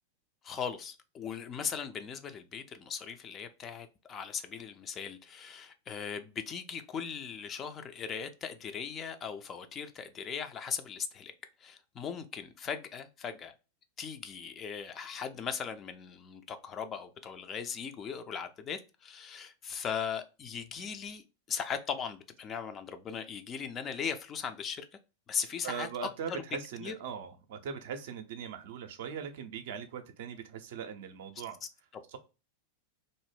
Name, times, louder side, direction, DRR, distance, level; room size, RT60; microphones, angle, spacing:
voice 1, 0.4-11.3 11.6-13.5 14.0-24.9 25.3-26.4 26.8-26.9 31.9-32.0, left 7 dB, 25° left, 0.3 m, -38 dB
voice 2, 25.6-31.6 32.1-32.2, right 7 dB, 55° right, 0.4 m, -40 dB
2.5 x 2.0 x 3.3 m
figure-of-eight pair, 90°, 0 cm